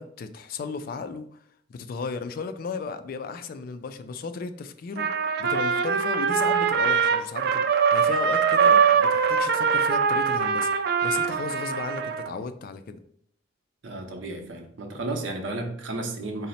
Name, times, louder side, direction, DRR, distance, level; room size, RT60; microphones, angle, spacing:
voice 1, 0.0-1.4 1.7-5.1 5.4-13.0, left 4 dB, 50° left, 0.3 m, -35 dB
Trumpet, 5.0-12.3, right 6 dB, 55° right, 0.3 m, -22 dB
voice 2, 13.8-16.5, right 2 dB, 90° right, 0.7 m, -33 dB
3.9 x 2.0 x 4.0 m
head